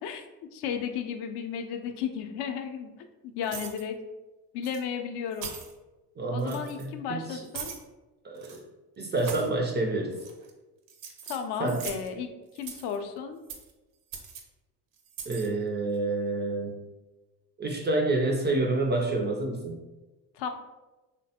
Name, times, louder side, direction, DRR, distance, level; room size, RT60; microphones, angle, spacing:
voice 1, 0.0-4.0 4.5-5.5 6.3-7.7 11.3-13.4 20.3-20.5, left 7 dB, 60° left, 6 dB, 0.5 m, -34 dB
sound 1, 3.4-3.8 4.6-4.8 5.3-5.7 6.4-6.9 7.5-7.8 8.4-8.6 9.1-9.5 10.1-10.5 10.9-12.1 12.6-13.0 13.5-13.7 14.1-14.4 15.1-15.5, right 7 dB, 75° right, 0.7 m, -41 dB
voice 2, 6.2-7.4 8.2-8.6 9.0-10.2 11.6-11.8 15.3-16.7 17.6-19.8, right 2 dB, 25° right, 2 dB, 0.4 m, -28 dB
3.2 x 2.2 x 2.7 m, 1.1 s
supercardioid pair, 75°, 46 cm